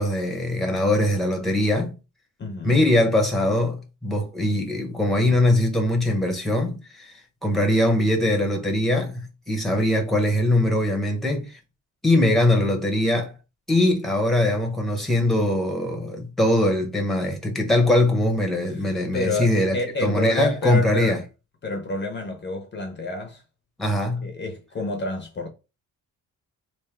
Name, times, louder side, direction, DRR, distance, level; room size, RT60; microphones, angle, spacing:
voice 1, 0.0-2.0 2.6-7.1 7.4-11.6 12.0-13.3 13.7-19.8 20.0-21.2 23.8-24.3, left 1 dB, ahead, 0.9 m, -22 dB
voice 2, 2.4-2.8 18.7-21.2 21.6-23.4 24.2-25.5, left 2 dB, 35° left, 0.7 m, -29 dB
3.3 x 2.6 x 3.6 m
wide cardioid pair, 145°, 33 cm